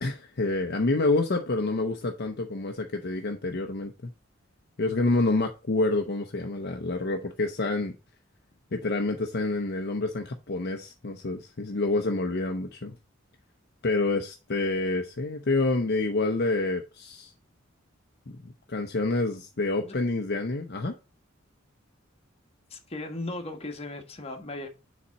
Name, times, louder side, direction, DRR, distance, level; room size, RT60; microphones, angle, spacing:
voice 1, 0.0-4.1 4.8-7.9 8.7-13.0 13.8-17.3 18.3-21.0, left 2 dB, 55° left, 0.7 m, -28 dB
voice 2, 22.7-24.7, left 2 dB, 30° left, 1.3 m, -37 dB
7.0 x 4.2 x 4.0 m
head